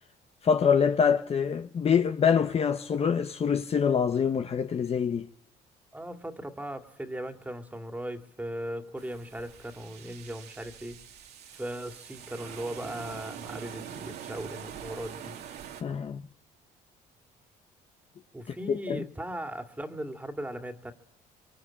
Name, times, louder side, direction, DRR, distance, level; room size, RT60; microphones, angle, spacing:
voice 1, 0.4-5.3 15.8-16.2 18.5-19.0, left 7 dB, 35° left, 1.1 m, -25 dB
voice 2, 5.9-11.0 11.5-15.4 18.3-20.9, right 1 dB, 10° right, 2.5 m, -38 dB
sound 1, 9.0-15.8, right 9 dB, 75° right, 3.0 m, -44 dB
24.5 x 23.5 x 8.8 m
cardioid pair, 110°, 17 cm